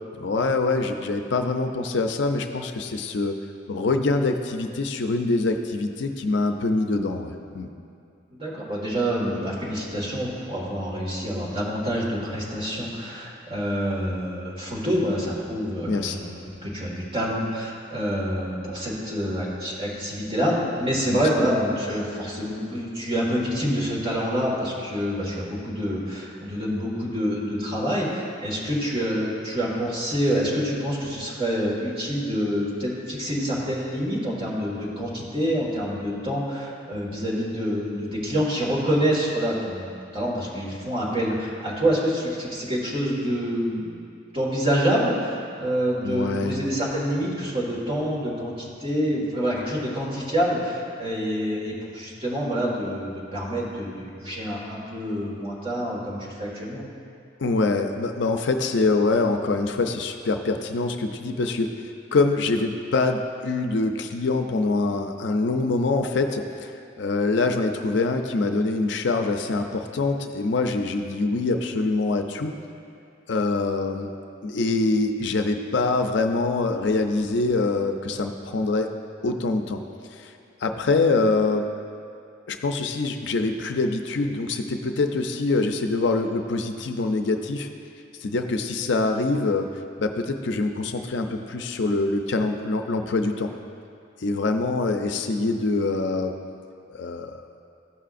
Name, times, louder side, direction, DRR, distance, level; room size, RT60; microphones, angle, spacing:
voice 1, 0.2-3.4 3.7-7.7 15.9-16.2 21.1-21.5 46.0-46.6 57.4-61.7 62.1-66.7 67.0-72.5 73.3-74.1 74.4-78.9 79.2-79.8 80.1-80.3 80.6-81.7 82.5-87.7 88.2-89.7 90.0-93.5 94.2-96.3 96.9-97.4, left 3 dB, 70° left, 5 dB, 0.5 m, -24 dB
voice 2, 8.3-16.3 16.6-44.1 44.3-56.8, equal, 30° right, -5 dB, 1.7 m, -27 dB
14.5 x 5.6 x 2.5 m, 2.4 s
head